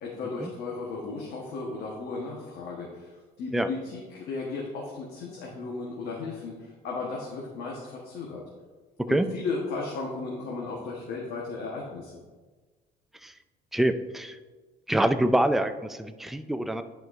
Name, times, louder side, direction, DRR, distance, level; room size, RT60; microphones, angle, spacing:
voice 1, 0.0-8.4 9.1-12.2, left 3 dB, 75° left, -2 dB, 1.1 m, -35 dB
voice 2, 13.7-14.4 14.9-16.8, right 1 dB, ahead, 9 dB, 0.3 m, -25 dB
10.5 x 4.5 x 2.5 m, 1.3 s
cardioid pair, 110°, 17 cm